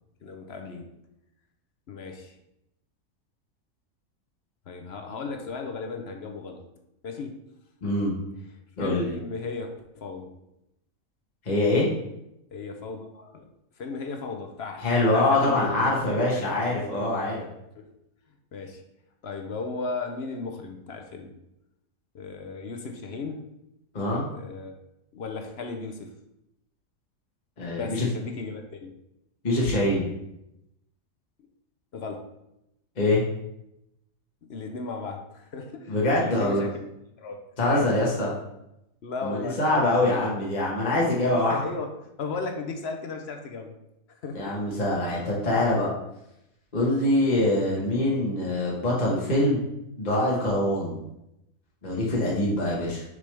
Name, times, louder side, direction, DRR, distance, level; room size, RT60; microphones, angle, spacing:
voice 1, 0.2-0.9 1.9-2.3 4.7-6.6 7.0-7.4 7.8-8.0 8.8-10.3 12.5-13.5 13.8-16.0 16.4-16.5 17.0-17.2 17.7-17.9 18.5-18.8 19.2-21.3 22.1-23.4 24.3-24.8 25.1-26.1 27.8-28.9 31.9-32.3 34.5-36.7 37.2-37.9 39.0-40.4 41.5-43.8 44.1-44.6 47.6-47.9, left 4 dB, 55° left, 4 dB, 0.9 m, -36 dB
voice 2, 7.8-8.1 8.8-9.1 11.4-11.9 14.8-17.4 23.9-24.2 27.6-28.1 29.4-30.1 33.0-33.2 35.9-36.6 37.6-38.3 39.2-41.5 44.3-45.9 46.7-49.6 50.0-51.0 51.8-53.0, left 1 dB, 35° left, -5 dB, 1.3 m, -24 dB
6.7 x 5.3 x 3.3 m, 0.85 s
omnidirectional pair, 1.4 m